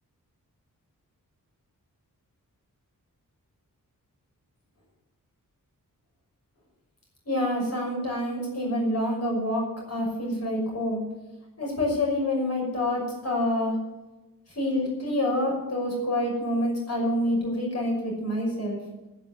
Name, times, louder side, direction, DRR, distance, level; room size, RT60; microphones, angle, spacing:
voice 1, 7.3-11.0 11.6-13.8 14.6-18.8, left 1 dB, 50° left, -1 dB, 6.0 m, -27 dB
10.5 x 10.5 x 8.1 m, 1.1 s
wide cardioid pair, 175°, 34 cm